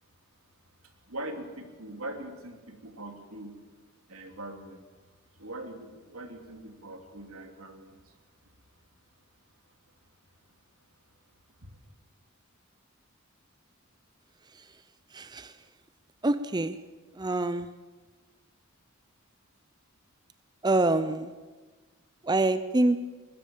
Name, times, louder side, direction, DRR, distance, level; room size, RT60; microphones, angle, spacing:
voice 1, 0.8-3.6 4.1-4.9 5.3-8.1 8.4-8.5 11.6-11.7, right 1 dB, 85° right, 4 dB, 3.2 m, -42 dB
voice 2, 14.5-14.8 15.1-15.6 16.2-16.8 17.1-17.7 20.6-21.3 22.2-23.0, right 2 dB, 20° right, 12 dB, 0.6 m, -26 dB
22.5 x 21.0 x 7.4 m, 1.3 s
head